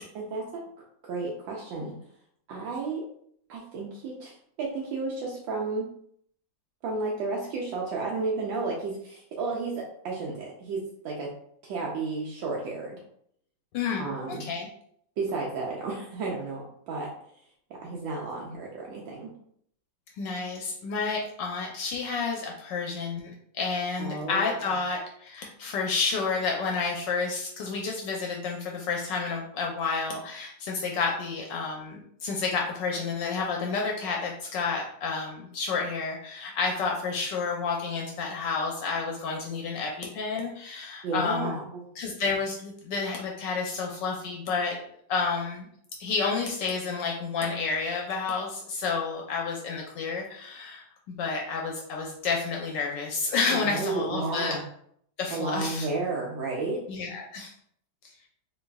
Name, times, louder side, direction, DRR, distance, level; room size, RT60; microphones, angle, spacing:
voice 1, 0.1-0.6 1.0-2.0 2.5-3.1 3.5-5.9 6.8-11.3 11.6-13.0 14.0-14.5 15.2-17.1 17.7-19.3 24.0-24.4 41.0-41.9 53.5-54.6 55.3-56.8, right 3 dB, 80° right, -2 dB, 1.3 m, -32 dB
voice 2, 13.7-14.7 20.2-41.5 42.0-44.8 45.1-45.7 46.0-54.6 55.2-55.9 56.9-57.5, left 4 dB, 75° left, 0 dB, 1.2 m, -30 dB
3.9 x 3.1 x 2.3 m, 0.66 s
omnidirectional pair, 2.1 m